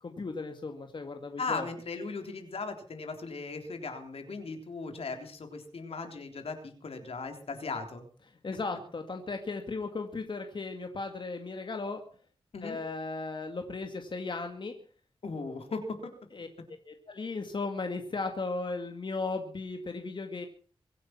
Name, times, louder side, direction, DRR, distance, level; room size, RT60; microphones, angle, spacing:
voice 1, 0.0-1.7 8.4-12.0 12.6-14.7 16.3-16.5 16.9-20.5, left 3 dB, 55° left, 5 dB, 2.4 m, -36 dB
voice 2, 1.4-8.0 12.5-12.8 15.2-16.1, left 4 dB, 80° left, 5 dB, 3.6 m, -37 dB
24.0 x 9.3 x 6.0 m, 0.43 s
wide cardioid pair, 90°, 10 cm